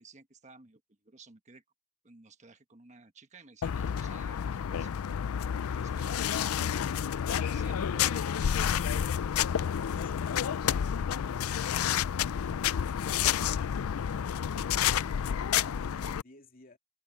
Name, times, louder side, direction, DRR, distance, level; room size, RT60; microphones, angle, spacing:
voice 1, 0.0-1.6 2.0-4.9 5.5-6.6 7.3-9.1 14.0-14.2, right 4 dB, 35° right, 1.4 m, -55 dB
sound 1, 3.6-16.2, left 8 dB, 90° left, 0.4 m, -30 dB
voice 2, 14.2-16.8, left 2 dB, 40° left, 2.9 m, -55 dB
head